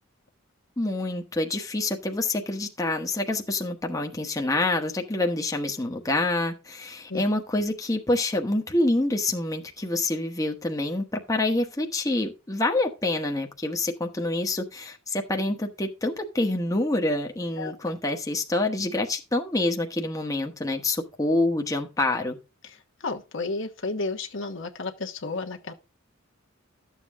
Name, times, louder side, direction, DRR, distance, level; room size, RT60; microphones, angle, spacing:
voice 1, 0.8-22.4, left 2 dB, 15° left, 1.1 m, -27 dB
voice 2, 17.6-18.0 23.0-25.7, left 3 dB, 65° left, 1.2 m, -32 dB
12.5 x 7.3 x 3.6 m
head